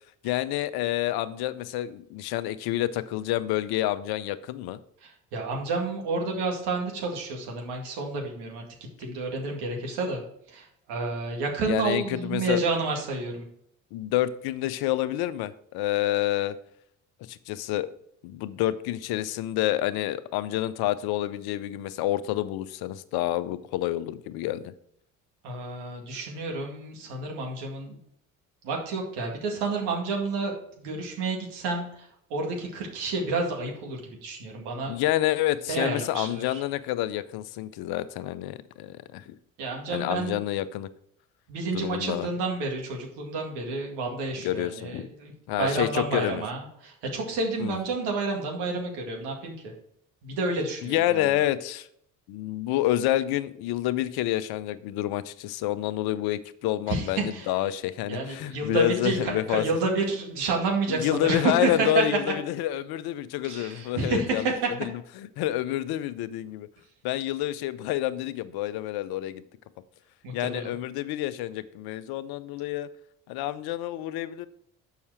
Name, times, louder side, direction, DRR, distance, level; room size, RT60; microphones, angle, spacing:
voice 1, 0.2-4.8 11.7-12.6 13.9-16.6 17.3-17.9 18.2-24.7 34.9-39.3 39.9-40.9 41.7-42.3 44.4-45.1 45.5-46.4 47.6-47.8 50.8-51.9 52.3-59.6 60.9-66.7 67.0-69.4 70.3-72.9 73.3-74.5, left 14 dB, 60° left, 15 dB, 0.7 m, -28 dB
voice 2, 5.0-8.6 9.0-10.2 10.5-13.5 25.4-28.0 28.6-34.9 35.7-36.6 39.6-40.4 41.5-45.3 45.6-49.5 50.2-51.2 56.9-57.5 58.1-62.0 63.4-64.4 70.2-70.7, right 3 dB, 70° right, 0 dB, 2.2 m, -30 dB
7.0 x 5.6 x 4.8 m, 0.71 s
hypercardioid pair, 50°, 42 cm